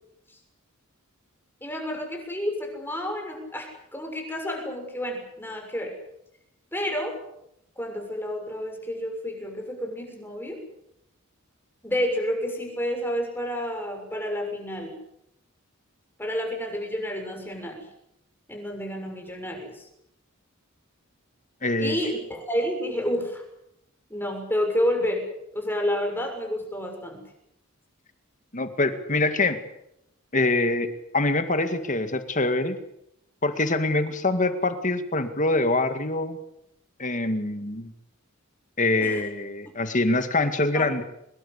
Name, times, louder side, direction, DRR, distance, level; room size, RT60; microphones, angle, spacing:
voice 1, 1.6-5.9 6.7-7.2 7.8-10.6 11.8-15.0 16.2-17.9 18.5-19.9 21.8-23.4 24.1-25.3 25.5-27.2 39.0-39.2 40.7-40.9, equal, 10° left, 3 dB, 6.7 m, -30 dB
voice 2, 21.6-22.0 28.5-29.6 30.3-32.8 33.4-36.4 37.0-37.9 38.8-41.0, left 2 dB, 35° left, 9 dB, 2.0 m, -24 dB
24.0 x 21.5 x 8.3 m, 0.80 s
head